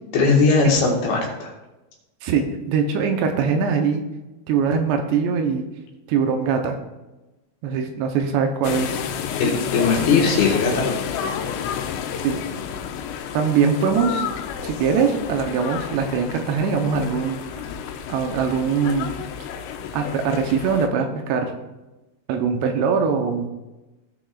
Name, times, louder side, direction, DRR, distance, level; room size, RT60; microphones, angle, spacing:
voice 1, 0.1-1.5 9.4-11.0 11.4-11.6, left 4 dB, 65° left, 0 dB, 3.1 m, -19 dB
voice 2, 2.2-4.0 4.5-5.7 6.1-6.8 7.6-9.0 12.2-12.4 13.3-14.3 14.6-17.6 18.1-19.3 19.9-21.5 22.3-23.5, right 6 dB, 80° right, 5 dB, 2.9 m, -22 dB
sound 1, 8.6-20.9, left 8 dB, 85° left, 2.8 m, -30 dB
16.5 x 6.2 x 2.4 m, 1.0 s
omnidirectional pair, 5.1 m